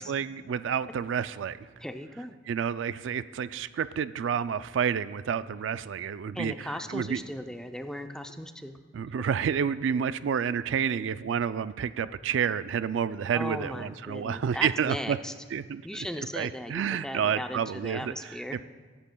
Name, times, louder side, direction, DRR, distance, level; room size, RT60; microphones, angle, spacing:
voice 1, 0.0-1.7 2.5-6.5 6.9-7.2 8.9-15.2 15.5-15.8 16.3-18.1, right 7 dB, 70° right, 15 dB, 0.3 m, -29 dB
voice 2, 1.8-2.4 6.3-8.8 13.3-15.3 15.8-18.6, left 1 dB, 5° left, 6 dB, 0.5 m, -37 dB
23.5 x 11.5 x 2.3 m, 1.5 s
head